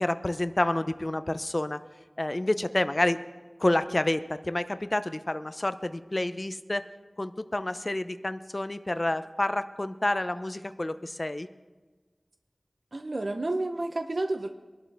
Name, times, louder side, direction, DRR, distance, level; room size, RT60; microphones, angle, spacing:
voice 1, 0.0-1.8 2.2-3.2 3.6-6.8 7.2-11.5, left 1 dB, 35° left, 11 dB, 0.5 m, -29 dB
voice 2, 12.9-14.5, right 2 dB, 60° right, 6 dB, 0.7 m, -30 dB
22.5 x 12.0 x 3.4 m, 1.3 s
wide cardioid pair, 60°, 0 cm